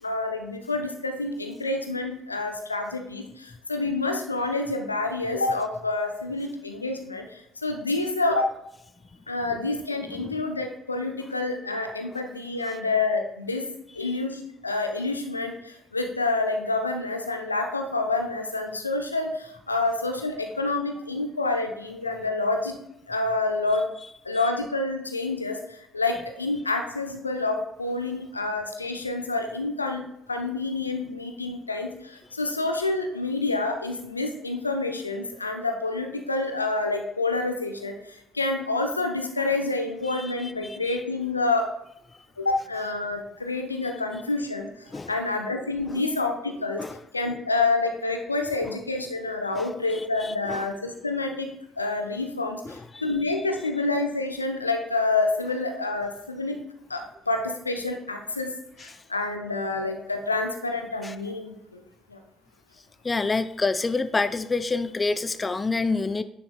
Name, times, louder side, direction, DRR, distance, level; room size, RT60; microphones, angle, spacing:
voice 1, 0.0-8.5 9.3-13.7 13.9-22.8 23.1-23.9 24.2-30.0 30.3-41.7 42.4-44.7 45.1-46.8 47.1-51.5 51.8-56.6 56.9-58.5 58.8-61.8 62.1-62.2, left 3 dB, 85° left, 4 dB, 0.6 m, -28 dB
voice 2, 10.1-10.4 12.7-12.8 14.0-14.1 40.0-41.0 43.8-43.9 44.9-45.1 45.9-46.0 46.8-47.0 48.6-48.7 49.5-50.7 52.7-53.0 58.8-59.0 61.0-61.2 63.0-66.2, left 3 dB, 25° left, 13 dB, 0.4 m, -29 dB
9.2 x 6.9 x 2.2 m, 0.81 s
figure-of-eight pair, 50°, 0 cm